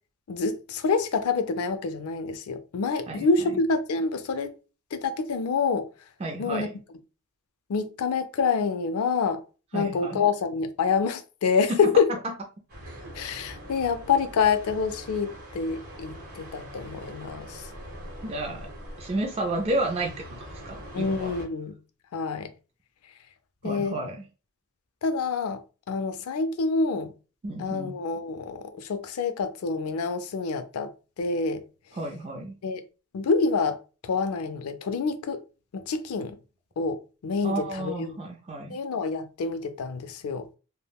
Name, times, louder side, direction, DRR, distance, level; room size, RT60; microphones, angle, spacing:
voice 1, 0.3-4.5 4.9-5.9 6.4-6.7 7.7-9.4 9.7-12.1 13.1-17.7 20.9-21.8 22.1-22.5 23.6-24.0 25.0-27.1 27.6-31.6 32.6-32.8 33.1-33.8 34.0-35.4 35.7-36.4 36.8-38.2 38.7-40.5, left 5 dB, 80° left, 0.4 m, -27 dB
voice 2, 6.2-6.7 9.7-10.2 11.7-11.8 18.2-18.7 19.0-21.3 23.6-24.2 27.4-27.9 31.9-32.5 37.4-38.8, right 2 dB, 25° right, 0.3 m, -31 dB
sound 1, 12.7-21.5, equal, 50° right, 1.5 m, -43 dB
3.4 x 2.1 x 2.2 m
head